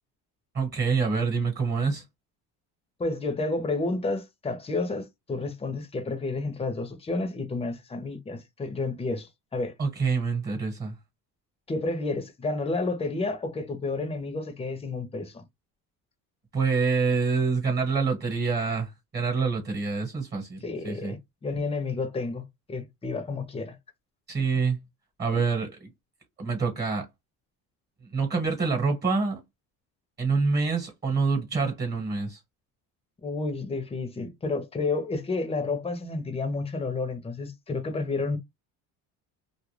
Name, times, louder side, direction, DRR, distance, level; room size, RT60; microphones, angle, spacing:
voice 1, 0.5-2.0 9.8-10.9 16.5-20.6 20.8-21.1 24.3-24.8 25.2-25.9 26.4-27.0 28.1-29.4 30.2-32.4, right 4 dB, 30° right, 1.2 m, -26 dB
voice 2, 3.0-9.7 11.7-15.4 20.6-22.4 22.7-23.8 33.2-38.4, left 3 dB, 15° left, 0.7 m, -30 dB
2.4 x 2.1 x 3.1 m
cardioid pair, 120°, 34 cm